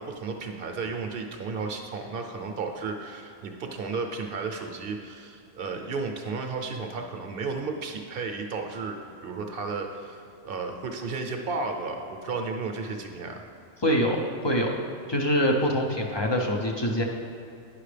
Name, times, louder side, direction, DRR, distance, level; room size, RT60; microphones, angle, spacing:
voice 1, 0.0-13.4, right 4 dB, 55° right, 4 dB, 0.8 m, -33 dB
voice 2, 13.8-14.2 14.4-14.8 15.1-17.0, equal, 35° left, 1 dB, 0.4 m, -24 dB
9.9 x 5.9 x 3.3 m, 2.5 s
omnidirectional pair, 1.2 m